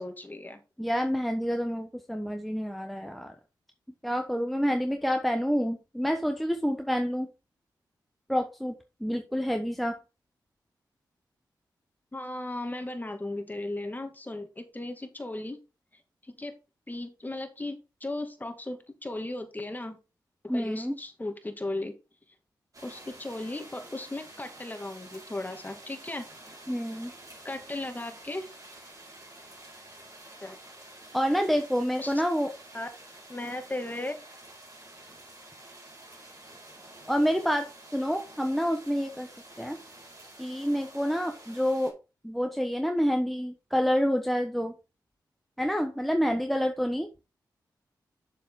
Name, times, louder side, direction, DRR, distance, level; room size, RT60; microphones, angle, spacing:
voice 1, 0.0-0.6 12.1-15.6 16.2-16.5 16.9-20.0 20.4-21.9 22.8-26.3 27.4-28.5 30.4-30.6 32.0-32.1 32.7-32.9 33.3-34.1, left 2 dB, 20° left, 5 dB, 2.2 m, -36 dB
voice 2, 0.8-3.3 4.0-7.3 8.3-8.8 9.0-9.9 20.5-21.0 26.7-27.1 31.1-32.5 37.1-39.3 39.6-39.8 40.4-42.0 42.2-44.7 45.6-47.1, equal, ahead, 4 dB, 1.1 m, -28 dB
sound 1, 22.7-41.9, right 1 dB, 45° right, 4.8 m, -49 dB
7.2 x 6.9 x 3.8 m, 0.29 s
cardioid pair, 45°, 8 cm